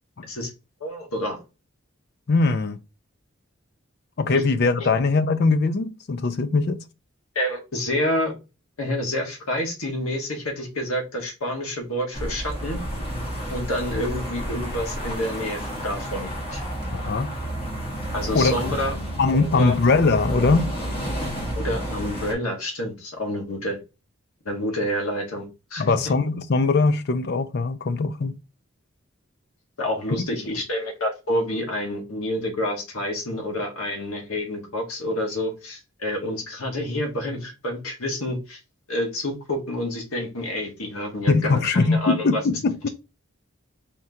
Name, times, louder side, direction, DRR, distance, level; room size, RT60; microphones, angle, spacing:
voice 1, 0.8-1.4 4.3-4.4 4.8-4.9 7.3-8.3 8.8-12.8 13.5-16.6 18.1-18.9 19.3-19.8 21.5-23.8 24.4-25.4 25.7-25.8 29.8-38.6 38.9-42.4, left 1 dB, 85° left, 1.5 m, -28 dB
voice 2, 2.3-2.8 4.2-6.8 16.9-17.3 18.3-18.5 19.2-20.8 25.8-28.3 41.3-42.9, left 3 dB, 50° left, 0.4 m, -21 dB
sound 1, 12.1-22.3, equal, 25° left, 1.3 m, -31 dB
4.4 x 3.6 x 2.7 m
head